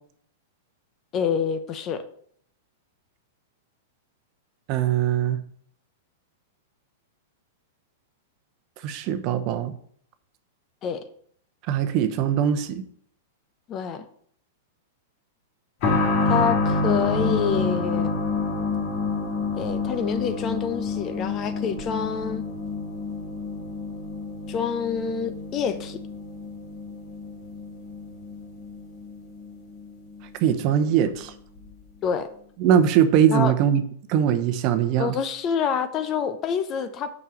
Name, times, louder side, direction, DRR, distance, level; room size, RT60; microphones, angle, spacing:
voice 1, 1.1-2.0 10.8-11.0 13.7-14.1 16.2-18.1 19.6-22.4 24.5-26.0 32.0-32.3 33.3-33.5 35.0-37.1, left 7 dB, 35° left, 10 dB, 0.8 m, -27 dB
voice 2, 4.7-5.4 8.8-9.7 11.7-12.8 30.4-31.3 32.6-33.8 34.1-35.2, right 9 dB, 45° right, 9 dB, 0.8 m, -21 dB
sound 1, 15.8-30.2 30.5-30.6 31.6-31.7, left 3 dB, 50° left, 1.8 m, -28 dB
5.7 x 5.4 x 6.1 m, 0.62 s
hypercardioid pair, 110°, 0 cm